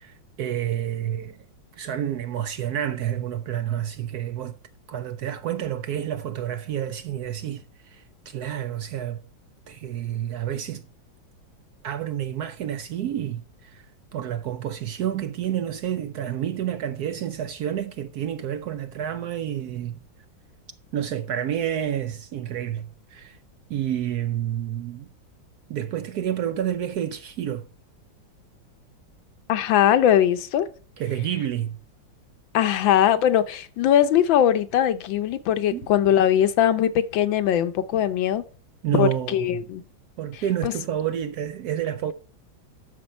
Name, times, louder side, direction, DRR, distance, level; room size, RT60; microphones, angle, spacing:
voice 1, 0.0-1.4 1.8-4.6 4.9-9.2 9.7-10.8 11.8-13.8 14.1-20.0 20.9-23.4 23.7-25.1 25.7-27.7 31.0-31.8 35.7-35.9 38.8-39.6 40.2-42.1, right 10 dB, 70° right, 0.9 m, -29 dB
voice 2, 29.5-30.7 32.5-38.4 39.0-39.8 40.6-40.7, left 10 dB, 80° left, 1.6 m, -20 dB
11.5 x 6.8 x 4.4 m
omnidirectional pair, 2.1 m